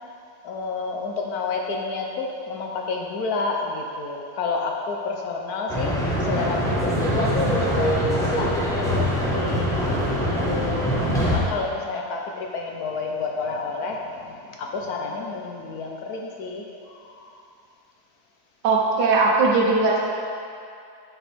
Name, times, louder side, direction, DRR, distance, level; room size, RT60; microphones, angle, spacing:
voice 1, 0.4-9.9 10.2-17.4, left 4 dB, 70° left, 0 dB, 1.1 m, -30 dB
sound 1, 5.7-11.4, equal, ahead, 0.9 m, -23 dB
voice 2, 18.6-20.0, right 3 dB, 85° right, -1 dB, 1.5 m, -19 dB
9.8 x 5.0 x 3.3 m, 2.5 s
omnidirectional pair, 1.8 m